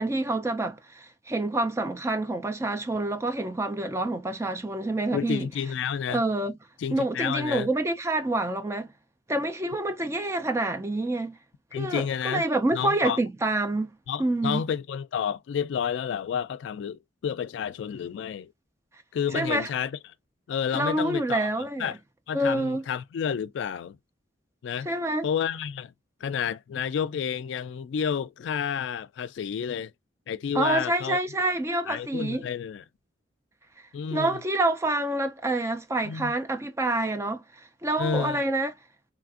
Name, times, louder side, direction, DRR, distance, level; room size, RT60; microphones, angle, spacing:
voice 1, 0.0-5.5 6.1-6.5 6.9-8.9 9.3-11.4 11.7-13.9 14.2-14.6 19.3-19.7 20.7-21.9 22.3-22.8 24.9-25.2 30.5-32.4 34.1-37.4 37.8-38.7, right 2 dB, 15° right, 0.4 m, -27 dB
voice 2, 5.1-6.2 6.8-7.7 11.7-12.4 12.7-13.2 14.1-18.5 19.1-19.9 20.5-21.5 21.8-22.0 22.3-24.0 24.6-24.9 25.2-25.9 26.2-29.9 30.3-31.2 31.9-32.8 33.9-34.4 36.0-36.3 38.0-38.4, left 7 dB, 75° left, 0.3 m, -30 dB
3.2 x 2.5 x 2.4 m
head